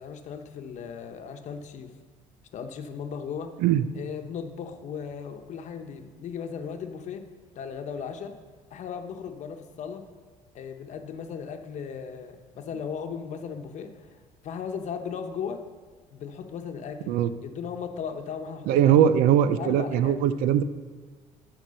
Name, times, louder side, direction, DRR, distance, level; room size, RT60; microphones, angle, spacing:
voice 1, 0.0-1.9 2.5-3.5 3.9-7.3 7.5-8.4 8.7-10.1 10.5-15.6 16.1-17.1 17.4-19.0 19.4-20.2, left 6 dB, 55° left, 6 dB, 0.9 m, -37 dB
voice 2, 18.7-20.6, right 10 dB, 90° right, 13 dB, 0.5 m, -21 dB
11.0 x 4.6 x 6.4 m, 1.4 s
cardioid pair, 115°, 14 cm